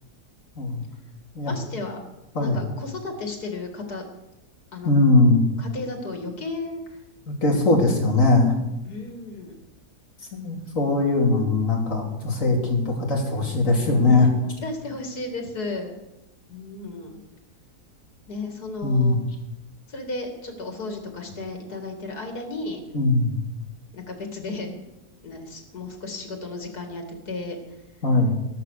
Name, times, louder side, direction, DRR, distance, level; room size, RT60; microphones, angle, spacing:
voice 1, 1.4-2.0 2.4-4.0 4.7-4.9 5.6-7.0 8.8-9.6 14.6-16.0 16.5-17.1 18.3-19.2 19.9-22.8 23.9-24.8 25.2-27.6, left 3 dB, 90° left, 4 dB, 3.0 m, -34 dB
voice 2, 4.9-5.4 7.4-8.5 10.3-14.3 18.8-19.2 22.9-23.4 28.0-28.3, left 2 dB, 55° left, 0 dB, 3.4 m, -20 dB
13.5 x 11.5 x 6.7 m, 0.94 s
omnidirectional pair, 1.6 m